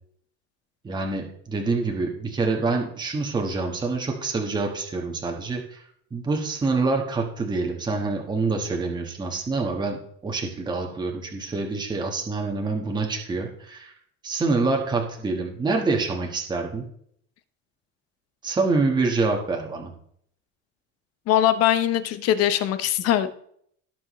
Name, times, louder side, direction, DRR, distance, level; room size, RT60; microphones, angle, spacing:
voice 1, 0.8-5.8 6.1-10.0 10.2-13.9 14.2-16.9 18.4-19.9, right 3 dB, 15° right, 1 dB, 1.3 m, -26 dB
voice 2, 21.3-23.3, left 11 dB, 50° left, 12 dB, 0.9 m, -21 dB
17.5 x 6.0 x 3.1 m, 0.65 s
cardioid pair, 160°, 32 cm